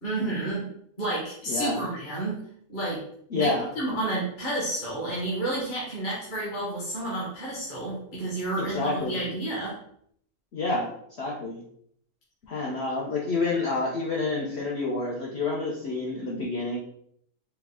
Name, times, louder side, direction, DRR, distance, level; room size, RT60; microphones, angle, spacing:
voice 1, 0.0-0.7 1.0-2.4 2.7-3.0 3.3-9.7, right 1 dB, 35° left, -7 dB, 1.2 m, -30 dB
voice 2, 1.5-1.8 3.3-3.7 8.6-9.2 10.5-10.9 11.2-11.6 12.5-16.8, left 3 dB, 60° left, -4 dB, 0.9 m, -28 dB
4.5 x 2.3 x 3.5 m, 0.67 s
omnidirectional pair, 1.5 m